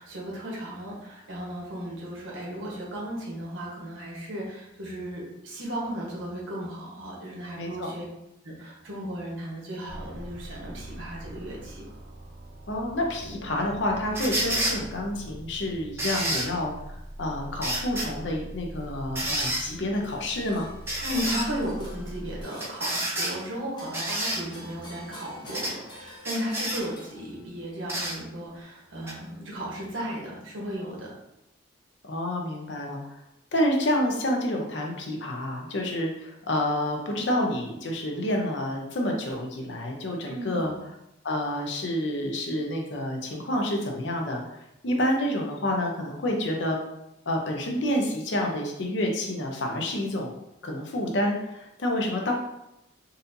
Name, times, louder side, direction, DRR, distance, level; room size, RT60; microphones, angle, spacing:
voice 1, 0.0-8.0 8.4-11.8 21.0-31.1 40.2-40.8, equal, 85° right, -4 dB, 1.1 m, -35 dB
voice 2, 7.6-7.9 12.7-20.7 32.0-33.0 33.5-40.7 41.2-44.6 44.8-46.8 47.3-50.3 50.6-52.3, left 1 dB, 70° left, 1 dB, 0.7 m, -28 dB
sound 1, 9.9-22.4, right 1 dB, 70° right, 0.5 m, -42 dB
sound 2, 14.1-14.8 16.0-16.5 17.6-18.1 19.2-19.6 20.9-21.5 22.6-23.3 23.9-24.4 25.5-25.7 26.2-26.8 27.9-28.2 29.1-29.2, right 1 dB, 15° right, 0.5 m, -28 dB
sound 3, 19.9-27.6, left 1 dB, 25° left, 0.7 m, -48 dB
4.1 x 2.6 x 2.6 m, 0.86 s
head